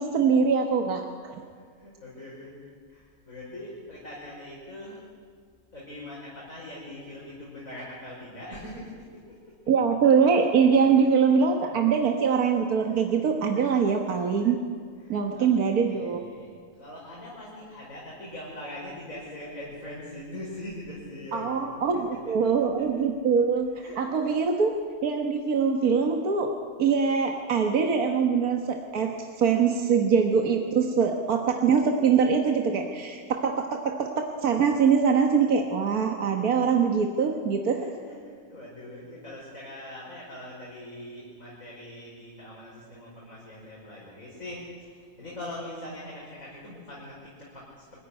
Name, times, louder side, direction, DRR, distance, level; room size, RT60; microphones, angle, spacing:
voice 1, 0.0-1.4 9.7-14.6 15.1-16.2 21.3-22.0 22.3-23.7 24.0-37.9, right 6 dB, 85° right, 3 dB, 1.8 m, -23 dB
voice 2, 1.5-2.6 2.9-5.0 5.7-9.7 10.1-10.2 12.7-13.0 13.6-13.8 14.9-15.5 15.8-22.9 23.4-24.4 33.7-33.8 37.7-48.0, left 1 dB, 65° left, -6 dB, 5.8 m, -42 dB
24.5 x 15.0 x 9.8 m, 2.1 s
omnidirectional pair, 1.5 m